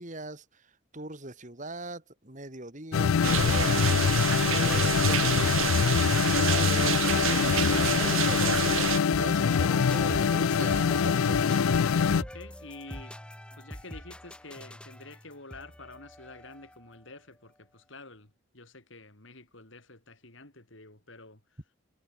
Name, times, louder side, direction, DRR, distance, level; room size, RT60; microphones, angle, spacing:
voice 1, 0.0-3.9 4.5-8.5 9.2-11.6, right 2 dB, 35° right, 2.6 m, -41 dB
sound 1, 2.9-12.2, left 6 dB, 80° left, 0.4 m, -24 dB
sound 2, 3.2-9.0, right 8 dB, 70° right, 1.2 m, -29 dB
sound 3, 9.1-16.9, equal, 5° left, 3.0 m, -42 dB
voice 2, 12.1-13.2 13.6-21.4, left 2 dB, 65° left, 3.9 m, -48 dB
head